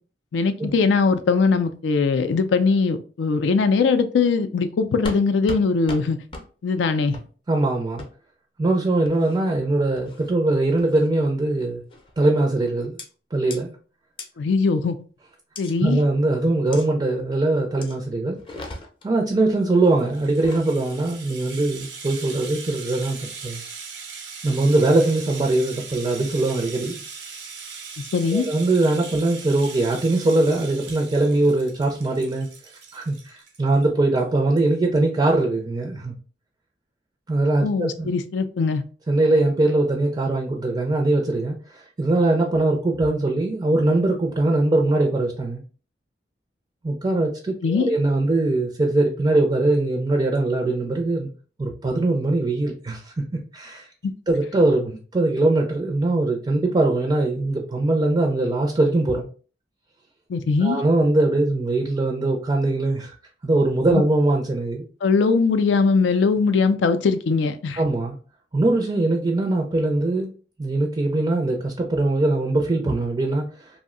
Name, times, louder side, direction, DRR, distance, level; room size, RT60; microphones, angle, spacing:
voice 1, 0.3-6.2 6.6-7.2 14.4-15.0 15.6-16.0 28.0-28.5 37.6-38.8 47.6-47.9 54.0-54.1 60.3-60.8 63.9-64.0 65.0-67.8, left 4 dB, 85° left, 10 dB, 0.4 m, -21 dB
sound 1, 5.0-5.2 5.5-5.6 5.9-6.0 6.3-6.5 7.1-7.3 8.0-8.1 9.0-9.4 10.0-10.3 10.8-11.1 11.9-12.2 13.0-13.1 13.5-13.6 14.2-14.3 15.5-15.7 16.7-16.9 17.8-18.0 18.4-19.1 20.3-20.7, left 2 dB, 30° left, 0.5 m, -36 dB
voice 2, 7.5-8.0 8.6-11.8 12.2-13.0 13.3-13.8 15.8-18.4 19.0-23.6 24.4-27.0 28.3-32.5 32.9-36.1 37.3-38.1 39.1-45.6 46.8-51.3 51.6-53.9 54.3-59.3 60.6-63.2 63.4-64.9 67.8-68.2 68.5-70.3 70.6-73.7, right 2 dB, 25° right, 2 dB, 0.4 m, -21 dB
Rattle (instrument), 19.7-33.8 34.2-34.3 34.6-34.7, right 5 dB, 80° right, 0.8 m, -39 dB
2.6 x 2.0 x 3.6 m, 0.39 s
head